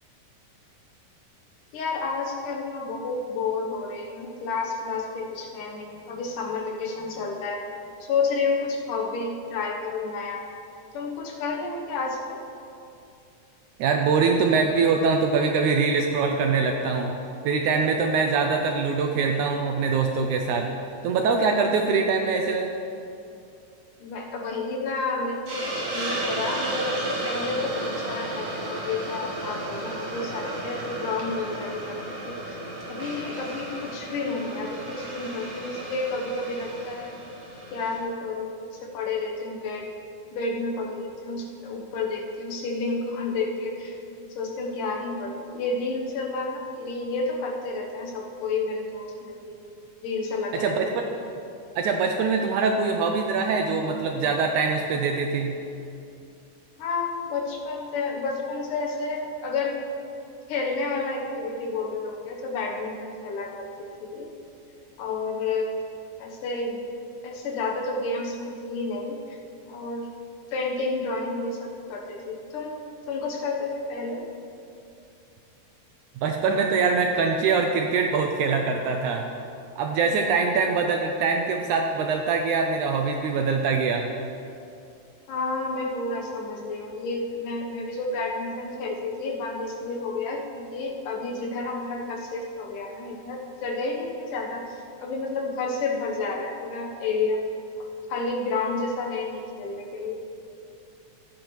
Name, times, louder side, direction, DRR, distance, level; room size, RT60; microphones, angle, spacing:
voice 1, 1.7-7.6 8.0-10.4 10.9-12.4 24.0-32.0 32.3-32.6 32.9-37.1 37.7-38.6 38.9-39.9 40.3-44.0 44.3-49.6 50.0-50.8 56.8-59.8 60.5-63.7 64.0-64.3 65.0-65.7 66.2-66.8 67.2-69.4 69.7-70.1 70.5-72.8 73.1-74.2 85.3-94.6 95.0-97.4 98.1-100.2, left 3 dB, 75° left, 0 dB, 2.5 m, -30 dB
voice 2, 13.8-17.1 17.5-20.7 21.0-22.7 50.6-51.1 51.8-55.6 76.2-79.2 79.8-84.0, right 4 dB, 85° right, 3 dB, 1.8 m, -23 dB
Hiss, 25.5-38.0, right 1 dB, 60° right, 1.1 m, -33 dB
14.5 x 8.9 x 3.1 m, 2.6 s
omnidirectional pair, 3.9 m